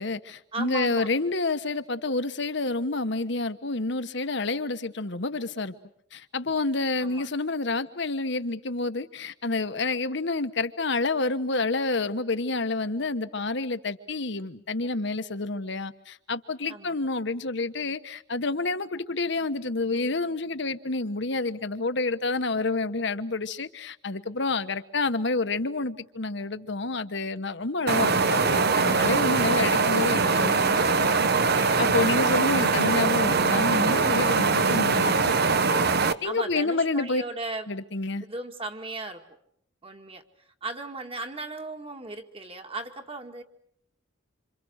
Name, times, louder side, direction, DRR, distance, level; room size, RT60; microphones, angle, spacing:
voice 1, 0.0-5.7 6.1-31.2 31.6-35.8 36.2-37.2 37.7-38.2, left 3 dB, 65° left, 1.3 m, -29 dB
voice 2, 0.5-1.1 7.0-7.3 16.7-16.9 19.9-20.2 36.2-37.7 38.3-39.2 39.8-40.2 40.6-43.4, right 3 dB, 30° right, 2.1 m, -37 dB
sound 1, 27.9-36.1, right 4 dB, 55° right, 1.1 m, -22 dB
27.5 x 27.0 x 6.5 m
head